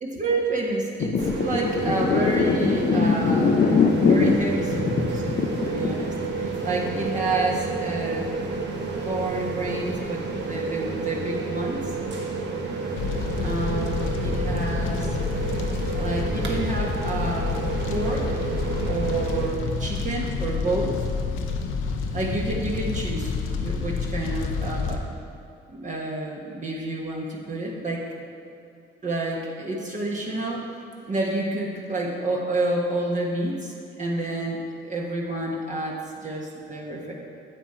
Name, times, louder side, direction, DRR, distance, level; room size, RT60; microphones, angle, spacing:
voice 1, 0.0-8.3 9.0-11.9 13.4-15.1 15.9-17.6 17.9-18.4 18.8-21.0 22.1-23.3 23.6-25.1 25.7-28.0 29.0-30.7 31.1-37.1, right 2 dB, 40° right, -2 dB, 1.4 m, -29 dB
sound 1, 1.0-7.2 7.5-7.8, left 5 dB, 45° left, 0.7 m, -22 dB
sound 2, 1.2-19.5, right 4 dB, 60° right, 1.4 m, -30 dB
Fire, 13.0-25.0, left 5 dB, 90° left, 0.8 m, -28 dB
10.0 x 7.5 x 4.4 m, 2.6 s
cardioid pair, 90°, 20 cm